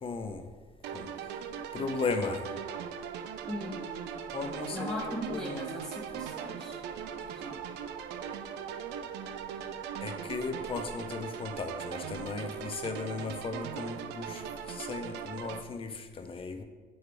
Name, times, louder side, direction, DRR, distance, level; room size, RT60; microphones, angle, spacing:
voice 1, 0.0-0.4 0.9-1.1 1.7-2.4 4.3-5.7 10.0-16.6, left 4 dB, 35° left, 7 dB, 0.7 m, -36 dB
sound 1, 0.8-15.6, right 8 dB, 85° right, 0.5 m, -39 dB
voice 2, 3.5-3.9 4.7-6.8 7.2-7.6, equal, 5° left, -5 dB, 1.4 m, -39 dB
7.8 x 3.4 x 4.7 m, 1.4 s
cardioid pair, 110°, 17 cm